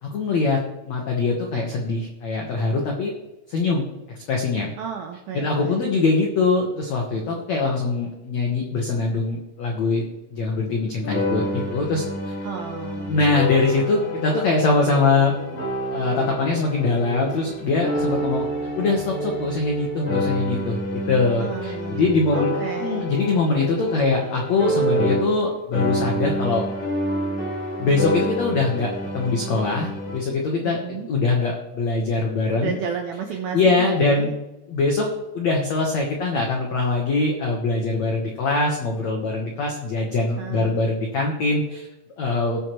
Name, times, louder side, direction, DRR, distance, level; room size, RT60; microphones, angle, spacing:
voice 1, 0.0-3.1 3.5-3.9 4.3-4.7 5.3-10.0 10.3-12.3 13.1-15.3 15.9-18.5 18.8-20.8 21.1-26.6 27.8-32.8 33.5-34.3 34.7-35.1 35.3-41.9 42.2-42.6, left 3 dB, 75° left, 0 dB, 1.6 m, -22 dB
voice 2, 4.8-5.8 12.4-13.2 21.4-23.0 30.6-31.1 32.5-34.3 40.4-40.8, right 7 dB, 80° right, 4 dB, 2.2 m, -33 dB
sound 1, 11.0-25.5 25.7-30.2, equal, 40° left, 3.7 m, -28 dB
18.5 x 7.1 x 3.1 m, 0.96 s
omnidirectional pair, 5.2 m